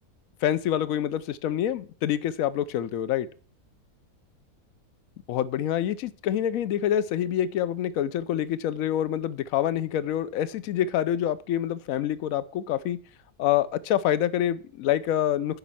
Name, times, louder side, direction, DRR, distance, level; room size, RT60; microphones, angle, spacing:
voice 1, 0.4-3.3 5.3-13.0 13.4-15.6, left 11 dB, 70° left, 1.0 m, -26 dB
11.0 x 5.2 x 5.7 m
omnidirectional pair, 1.6 m